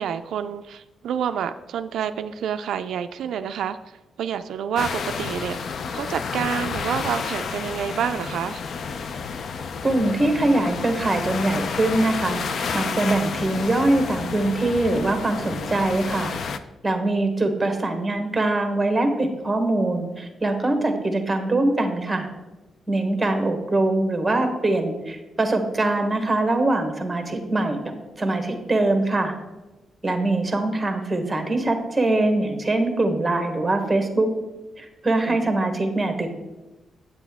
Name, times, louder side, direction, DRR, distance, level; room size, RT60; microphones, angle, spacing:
voice 1, 0.0-3.8 4.2-8.6 20.8-21.0 35.3-35.6, right 8 dB, 75° right, 9 dB, 0.3 m, -28 dB
sound 1, 4.8-16.6, left 5 dB, 50° left, 0.4 m, -30 dB
voice 2, 9.8-12.4 12.7-16.3 16.8-22.3 22.9-27.8 28.2-29.3 30.0-34.3 34.8-36.4, right 2 dB, 10° right, 6 dB, 1.0 m, -23 dB
9.2 x 8.1 x 3.5 m, 1.1 s
wide cardioid pair, 180°, 0 cm